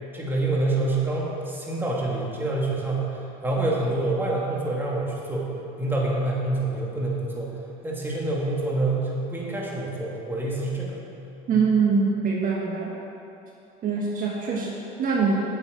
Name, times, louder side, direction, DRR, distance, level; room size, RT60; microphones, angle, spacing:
voice 1, 0.1-5.5 5.8-7.5 7.8-11.0 11.5-11.6, right 2 dB, 10° right, -4 dB, 2.7 m, -27 dB
voice 2, 11.5-12.9 13.8-15.4, right 5 dB, 50° right, -2 dB, 1.6 m, -23 dB
9.9 x 6.8 x 8.4 m, 2.8 s
supercardioid pair, 110°, 18 cm